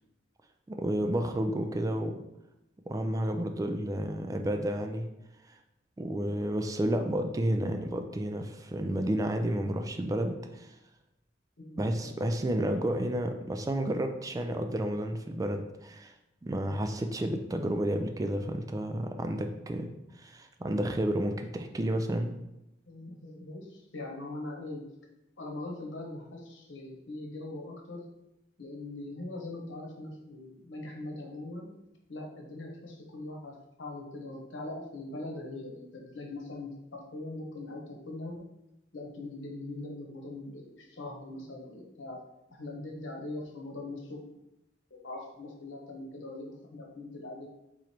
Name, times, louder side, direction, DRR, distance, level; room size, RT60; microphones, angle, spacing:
voice 1, 0.7-2.2 2.9-5.1 6.0-10.7 11.8-16.1 16.4-19.9 20.2-22.4, right 1 dB, 20° right, 5 dB, 0.3 m, -31 dB
voice 2, 11.6-12.2 22.9-24.8 25.4-28.0 28.6-31.7 32.1-38.4 38.9-42.2 42.5-44.2 44.9-47.5, left 2 dB, 85° left, 0 dB, 1.0 m, -41 dB
3.8 x 3.1 x 4.4 m, 0.89 s
head